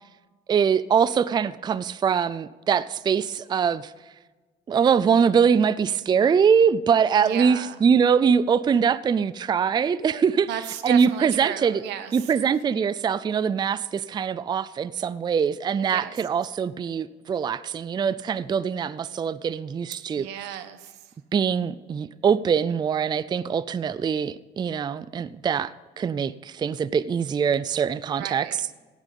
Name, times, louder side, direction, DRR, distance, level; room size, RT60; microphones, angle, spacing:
voice 1, 0.5-3.9 4.7-10.5 10.8-11.8 12.1-20.3 21.3-28.5, right 7 dB, 25° right, 17 dB, 0.4 m, -23 dB
voice 2, 7.2-7.8 10.5-12.3 15.9-16.1 20.1-21.1 28.2-28.6, right 10 dB, 90° right, 10 dB, 1.2 m, -34 dB
16.5 x 9.1 x 5.3 m, 1.3 s
cardioid pair, 110°, 17 cm